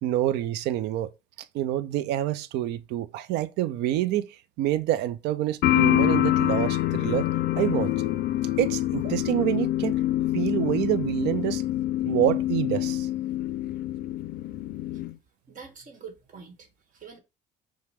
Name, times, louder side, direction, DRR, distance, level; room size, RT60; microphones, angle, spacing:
voice 1, 0.0-1.1 1.5-4.3 4.6-7.3 7.6-7.9 8.6-10.0 10.3-11.6 12.0-13.1, right 13 dB, 85° right, 0.4 m, -27 dB
sound 1, 5.6-15.1, left 14 dB, 65° left, 0.4 m, -26 dB
voice 2, 15.5-17.2, right 6 dB, 50° right, 1.4 m, -45 dB
5.8 x 2.2 x 3.4 m
cardioid pair, 110°, 17 cm